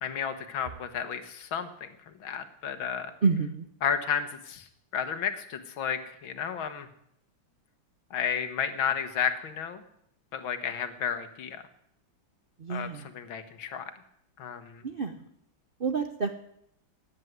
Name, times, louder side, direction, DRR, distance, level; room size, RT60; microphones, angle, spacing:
voice 1, 0.0-1.9 2.2-3.1 3.8-4.7 4.9-6.9 8.1-9.8 10.3-11.6 12.7-13.9 14.4-14.8, left 7 dB, 85° left, 9 dB, 2.1 m, -32 dB
voice 2, 3.2-3.7 12.6-13.1 14.8-15.1 15.8-16.3, right 5 dB, 55° right, 7 dB, 0.5 m, -28 dB
14.0 x 9.3 x 9.4 m, 0.74 s
omnidirectional pair, 2.1 m